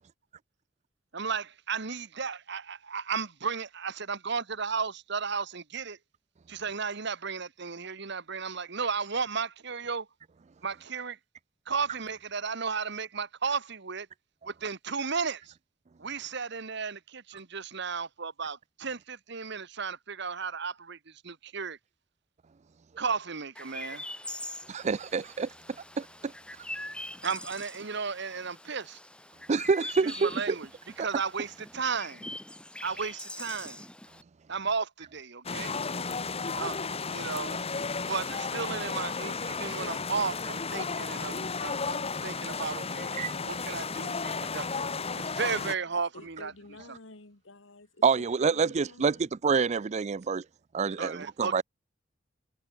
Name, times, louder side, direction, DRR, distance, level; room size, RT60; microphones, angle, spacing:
voice 1, 1.1-6.0 6.5-10.1 10.6-11.2 11.7-14.1 14.4-15.5 16.0-21.8 23.0-24.0 27.2-29.0 30.0-30.7 31.0-32.3 32.8-33.8 34.5-35.8 36.5-36.8 37.1-37.6 38.0-43.1 43.5-44.9 45.2-46.5 51.0-51.6, right 5 dB, 60° right, 1.5 m, -34 dB
Chirp tweet, 23.6-34.2, left 1 dB, 5° left, 3.2 m, -43 dB
voice 2, 24.7-25.5 26.0-26.3 29.5-30.6 31.0-31.1 43.2-43.3 48.0-50.4 50.7-51.6, right 5 dB, 35° right, 0.4 m, -27 dB
sound 1, 35.4-45.7, left 4 dB, 30° left, 1.3 m, -33 dB
voice 3, 46.1-49.4, left 2 dB, 75° left, 2.3 m, -50 dB
head